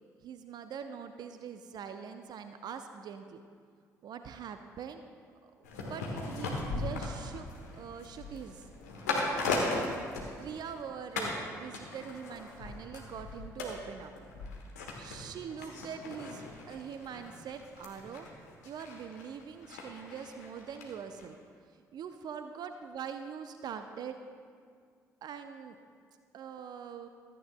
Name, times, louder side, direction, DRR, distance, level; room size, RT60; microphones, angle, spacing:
voice 1, 0.2-3.4 4.0-5.0 5.4-5.5 5.8-8.7 9.0-9.3 10.4-14.1 14.9-18.3 18.6-21.4 21.7-24.2 25.2-25.8 26.3-27.1, right 7 dB, 50° right, 8 dB, 0.6 m, -43 dB
sound 1, 5.6-10.8 11.2-11.4 11.7-20.9 21.2-21.3, left 2 dB, 80° left, 1.4 m, -38 dB
16.0 x 13.5 x 2.2 m, 2.2 s
figure-of-eight pair, 45°, 9 cm